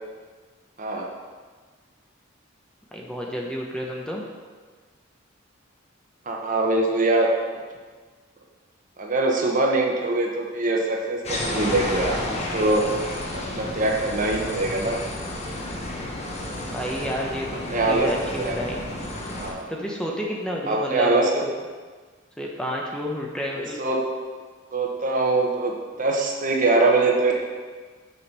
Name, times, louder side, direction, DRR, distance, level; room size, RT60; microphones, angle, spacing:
voice 1, 2.9-4.2 16.7-17.6 17.9-18.8 19.7-21.1 21.4-21.5 22.4-23.8, equal, 5° left, -2 dB, 0.8 m, -30 dB
voice 2, 6.3-7.3 9.0-12.2 12.5-12.8 13.3-15.0 17.7-18.5 19.4-20.1 20.7-21.3 23.5-24.0 24.7-27.3, right 2 dB, 45° right, 0 dB, 1.0 m, -23 dB
sound 1, 11.2-19.5, left 1 dB, 35° left, 1.1 m, -31 dB
7.2 x 5.1 x 5.3 m, 1.5 s
head